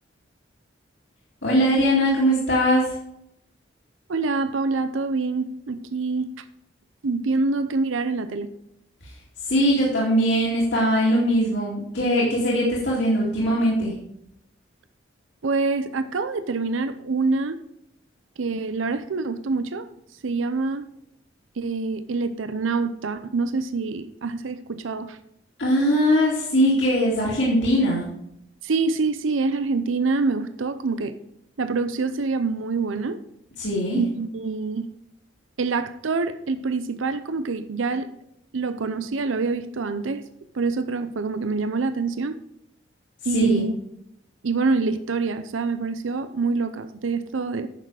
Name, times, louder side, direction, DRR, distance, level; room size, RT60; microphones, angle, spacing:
voice 1, 1.4-2.8 9.4-13.9 25.6-28.0 33.6-34.0 43.3-43.6, equal, 65° left, -6 dB, 2.5 m, -21 dB
voice 2, 4.1-6.3 7.0-8.5 15.4-17.6 18.4-19.9 20.2-20.9 21.6-25.2 28.6-31.1 31.6-33.2 33.9-34.9 35.6-38.1 38.5-40.2 40.5-42.4 43.2-43.7 44.4-47.7, right 4 dB, 85° right, 11 dB, 0.6 m, -25 dB
10.0 x 6.7 x 4.8 m, 0.78 s
head